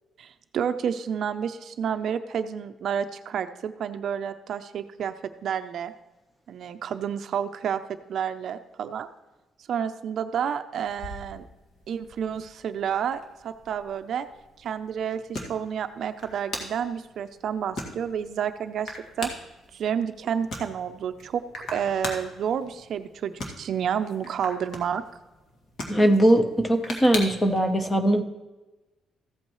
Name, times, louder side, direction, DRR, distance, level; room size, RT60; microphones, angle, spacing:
voice 1, 0.2-5.1 5.4-5.9 6.5-7.8 8.1-9.1 9.7-11.4 11.9-14.3 14.6-19.3 19.7-21.4 21.7-25.0, right 8 dB, 50° right, 9 dB, 0.5 m, -30 dB
sound 1, 10.9-27.6, left 1 dB, 50° left, 1.9 m, -41 dB
voice 2, 25.9-28.2, right 1 dB, 15° left, 7 dB, 0.8 m, -20 dB
14.5 x 8.4 x 3.1 m, 1.1 s
cardioid pair, 165°, 0 cm